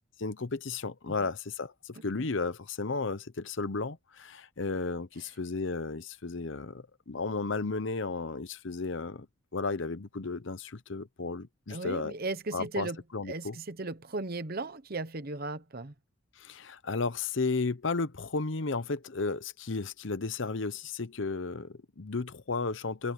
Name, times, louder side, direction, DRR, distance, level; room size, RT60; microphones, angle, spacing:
voice 1, 0.2-9.3 9.5-12.1 12.5-13.6 16.4-23.1, left 3 dB, 65° left, 0.8 m, -34 dB
voice 2, 11.7-13.0 13.3-15.9, right 3 dB, 45° right, 1.0 m, -36 dB
head